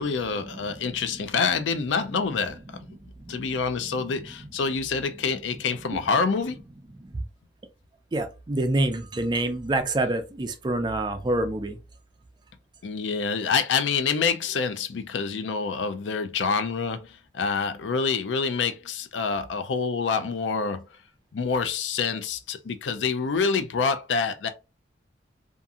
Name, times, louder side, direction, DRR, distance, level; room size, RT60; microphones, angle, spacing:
voice 1, 0.0-2.9 3.3-6.6 12.8-20.8 21.3-24.5, left 5 dB, 90° left, 0.4 m, -27 dB
voice 2, 3.9-4.2 5.9-6.0 8.1-11.8, right 2 dB, 25° right, 0.4 m, -27 dB
2.7 x 2.4 x 2.4 m
head